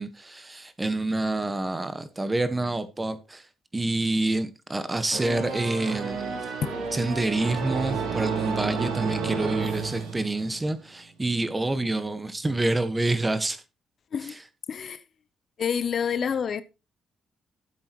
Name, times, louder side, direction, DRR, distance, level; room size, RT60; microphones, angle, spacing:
voice 1, 0.0-3.4 3.7-6.4 6.9-13.6, right 2 dB, 20° right, 1.4 m, -27 dB
sound 1, 5.1-10.8, right 5 dB, 90° right, 3.7 m, -31 dB
voice 2, 14.7-15.0 15.6-16.6, left 7 dB, 50° left, 0.7 m, -28 dB
13.0 x 7.8 x 3.1 m
cardioid pair, 90°, 0 cm